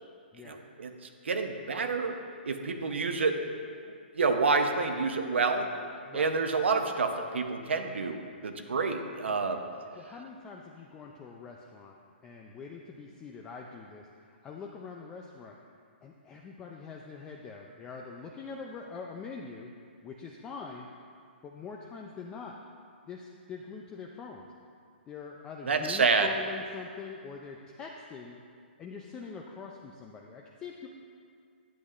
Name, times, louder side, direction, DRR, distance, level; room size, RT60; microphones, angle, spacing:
voice 1, 0.4-0.9 1.2-2.2 2.5-3.4 3.8-5.7 6.1-9.6 25.6-26.3, right 4 dB, 90° right, 6 dB, 0.7 m, -28 dB
voice 2, 10.0-12.0 12.2-14.1 14.4-15.6 16.0-19.7 20.0-20.9 21.4-22.6 23.1-24.5 25.1-28.4 28.8-30.9, left 5 dB, 10° left, 0 dB, 0.3 m, -43 dB
10.0 x 8.0 x 2.4 m, 2.2 s
hypercardioid pair, 160°, 6 cm